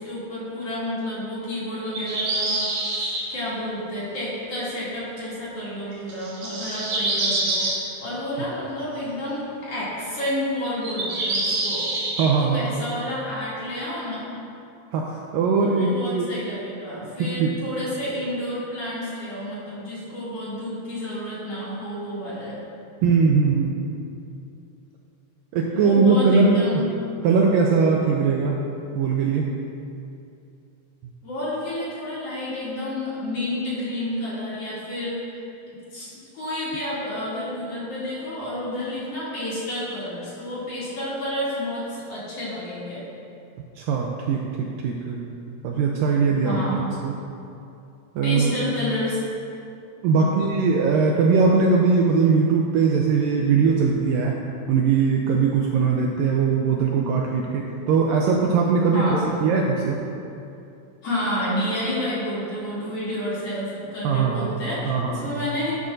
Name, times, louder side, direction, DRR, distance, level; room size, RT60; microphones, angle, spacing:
voice 1, 0.0-11.9 12.4-14.3 15.6-22.6 25.7-26.9 31.2-35.4 35.9-43.0 46.4-46.9 48.2-49.2 50.2-50.5 58.9-59.3 61.0-65.8, left 1 dB, 40° left, -10 dB, 3.2 m, -30 dB
sound 1, 1.8-3.2 5.4-5.6 6.1-7.8 10.3-12.3, right 2 dB, 60° right, 3.5 m, -26 dB
voice 2, 12.2-12.7 14.9-16.3 17.2-17.5 23.0-23.8 25.5-26.9 27.2-28.6 28.9-29.5 43.8-45.2 45.6-47.2 48.2-48.6 50.0-54.4 54.7-60.0 64.0-64.5 64.9-65.3, right 5 dB, 85° right, 0 dB, 2.0 m, -21 dB
12.0 x 11.0 x 2.6 m, 2.6 s
omnidirectional pair, 4.5 m